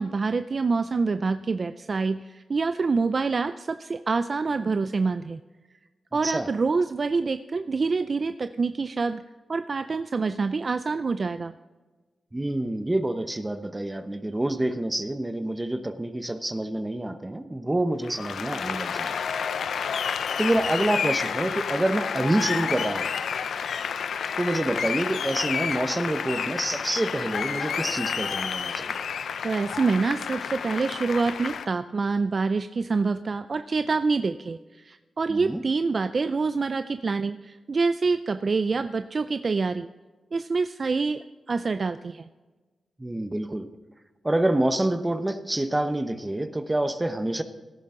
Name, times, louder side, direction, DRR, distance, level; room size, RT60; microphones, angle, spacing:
voice 1, 0.0-5.4 6.1-9.2 9.5-11.5 29.4-39.9 40.3-42.2, right 4 dB, 50° right, 11 dB, 0.4 m, -26 dB
voice 2, 6.1-6.5 12.3-19.2 20.4-23.1 24.4-29.0 35.3-35.6 43.0-43.7 44.2-47.4, right 1 dB, 15° right, 9 dB, 0.9 m, -27 dB
Applause, 18.0-31.7, left 7 dB, 85° left, 0.5 m, -30 dB
17.5 x 10.0 x 3.8 m, 1.3 s
cardioid pair, 80°, 0 cm